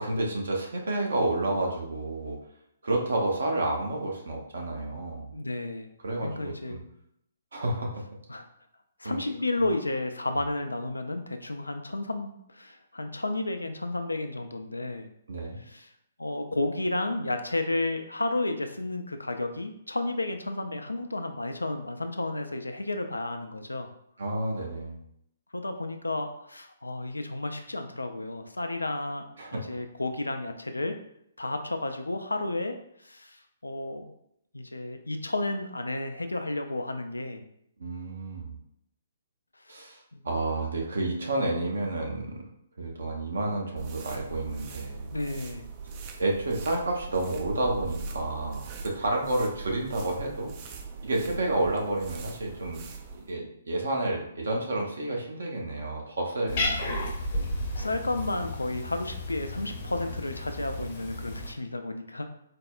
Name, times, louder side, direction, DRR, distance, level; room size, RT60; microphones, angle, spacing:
voice 1, 0.0-2.4 2.8-5.3 6.0-6.8 7.5-7.9 9.0-9.2 15.3-15.6 24.2-25.0 29.4-29.6 37.8-38.6 39.7-40.0 40.2-42.4 42.8-45.1 46.2-50.5 51.0-52.8 53.1-56.9, right 2 dB, 60° right, 0 dB, 0.7 m, -30 dB
voice 2, 5.3-5.9 6.2-6.8 8.3-8.4 9.0-15.1 15.6-15.9 16.2-23.9 25.5-29.2 29.5-30.9 31.4-32.8 33.0-34.1 34.5-37.4 39.7-39.8 40.1-40.2 45.1-45.7 56.4-56.8 57.8-62.2, left 2 dB, 80° left, 7 dB, 0.3 m, -32 dB
sound 1, 43.8-53.3, right 4 dB, 30° right, 0.4 m, -41 dB
Cat, 56.5-61.5, left 1 dB, 40° left, 0.7 m, -33 dB
4.2 x 2.0 x 2.3 m, 0.74 s
figure-of-eight pair, 130°, 0 cm